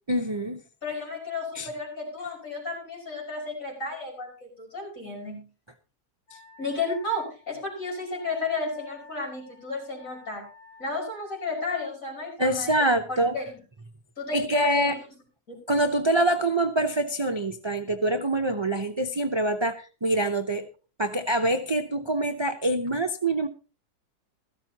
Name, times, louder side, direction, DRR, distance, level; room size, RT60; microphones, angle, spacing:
voice 1, 0.1-0.6 1.5-1.7 12.4-13.3 14.3-15.0 15.7-20.7 21.0-23.5, right 1 dB, 25° right, 5 dB, 0.5 m, -25 dB
voice 2, 0.8-5.5 6.6-10.4 10.8-13.5 14.2-14.9, left 3 dB, 55° left, 0 dB, 6.3 m, -33 dB
Wind instrument woodwind instrument, 6.3-11.9, left 3 dB, 85° left, 4.5 m, -52 dB
16.5 x 14.0 x 2.9 m, 0.34 s
omnidirectional pair, 1.7 m